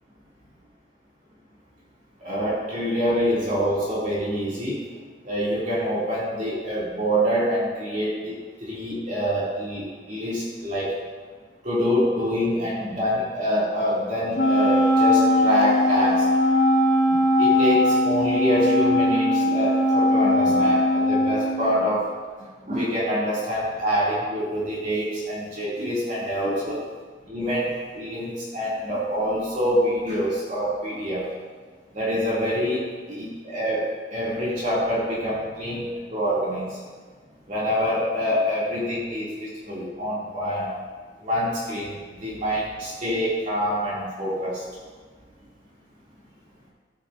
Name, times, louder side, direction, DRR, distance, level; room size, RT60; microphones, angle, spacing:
voice 1, 2.2-4.8 5.2-10.9 11.6-16.3 17.1-22.1 22.6-26.8 27.3-31.3 31.9-36.8 37.5-40.7 41.2-41.9 42.2-44.6, equal, 45° right, -8 dB, 3.0 m, -26 dB
Wind instrument woodwind instrument, 14.3-22.0, left 1 dB, 80° left, 2.2 m, -20 dB
14.0 x 10.0 x 2.8 m, 1.5 s
head